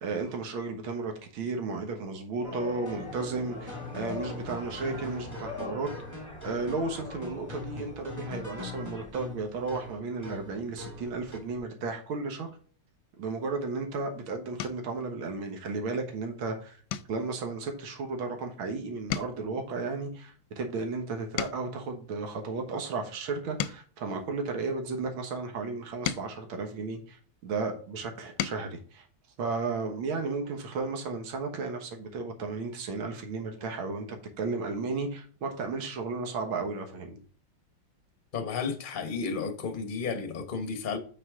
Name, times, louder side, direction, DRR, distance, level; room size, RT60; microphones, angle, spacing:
voice 1, 0.0-5.9 6.4-12.5 13.2-16.8 17.1-29.1 29.4-34.1 34.4-37.2, right 3 dB, 75° right, 2.1 m, -34 dB
sound 1, 2.4-9.1, left 3 dB, 50° right, 3.4 m, -42 dB
sound 2, 2.9-11.6, left 3 dB, 10° right, 1.9 m, -43 dB
sound 3, 13.7-14.0 14.6-15.0 15.5-15.8 16.1-16.3 16.9-18.7 19.0-21.9 22.5-25.0 25.6-27.5 28.0-28.8 30.1-30.2 30.5-30.7, left 10 dB, 75° left, 1.3 m, -39 dB
voice 2, 38.3-41.0, left 5 dB, 35° left, 0.9 m, -32 dB
8.6 x 4.9 x 3.7 m
omnidirectional pair, 2.3 m